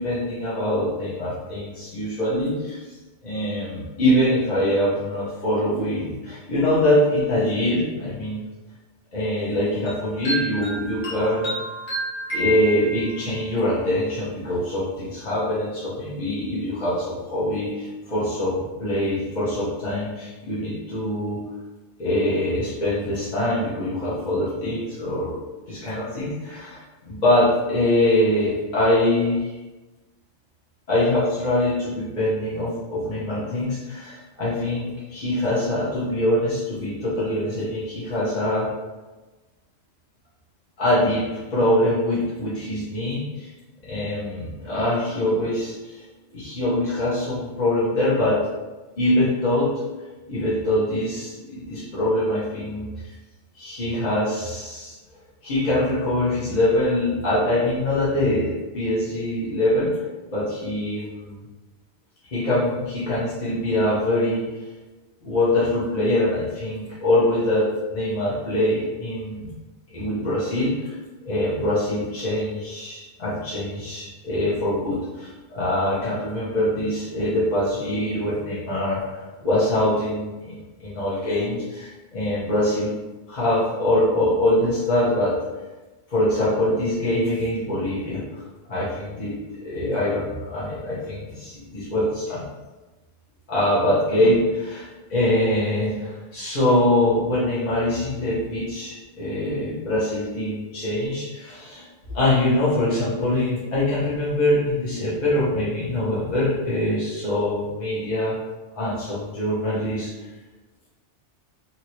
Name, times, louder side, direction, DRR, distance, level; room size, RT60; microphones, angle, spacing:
voice 1, 0.0-2.8 3.2-8.4 9.1-11.5 12.3-21.4 22.0-25.4 25.7-29.5 30.9-38.7 40.8-43.5 43.8-46.0 46.3-48.4 49.0-49.7 50.3-53.1 53.5-54.9 55.4-60.0 60.3-61.4 62.2-64.7 65.2-69.5 69.9-71.0 71.2-82.9 83.3-85.3 86.1-88.4 88.7-92.4 93.5-101.8 102.1-108.4 108.7-110.1, left 1 dB, 40° left, -9 dB, 0.9 m, -23 dB
sound 1, 9.9-13.4, equal, 80° left, 1.3 m, -30 dB
2.8 x 2.7 x 2.9 m, 1.2 s
omnidirectional pair, 1.2 m